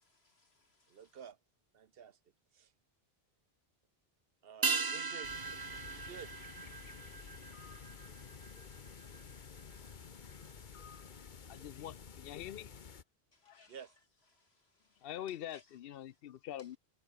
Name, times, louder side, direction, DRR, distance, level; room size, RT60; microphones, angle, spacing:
voice 1, 0.0-1.2 7.7-11.8 13.3-13.9 14.3-15.7 16.6-16.7, left 3 dB, 90° left, 3.6 m, -69 dB
voice 2, 0.9-1.4 1.7-2.2 2.5-2.7 4.4-5.3 5.9-6.3 13.7-13.9, right 8 dB, 70° right, 1.1 m, -51 dB
sound 1, 4.6-9.3 9.6-9.7, right 5 dB, 30° right, 0.5 m, -39 dB
sound 2, 5.2-13.0, left 6 dB, 50° left, 1.1 m, -51 dB
voice 3, 11.5-12.7 13.4-13.7 15.0-16.8, left 11 dB, 70° left, 0.7 m, -44 dB
omnidirectional pair, 1.0 m